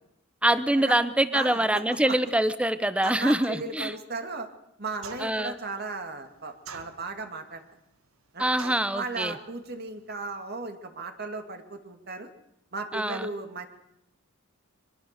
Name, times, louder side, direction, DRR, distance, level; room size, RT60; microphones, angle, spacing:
voice 1, 0.4-3.9 5.2-5.6 8.4-9.3 12.9-13.3, right 1 dB, 5° right, 12 dB, 1.1 m, -25 dB
voice 2, 1.3-1.7 2.1-2.2 3.0-4.5 4.8-7.6 8.3-8.5 8.9-12.3 12.7-13.7, right 3 dB, 50° right, 6 dB, 2.3 m, -36 dB
sound 1, 5.0-5.5 6.6-7.3 8.6-9.0, right 5 dB, 80° right, 1.5 m, -42 dB
24.0 x 21.5 x 6.8 m, 0.81 s
head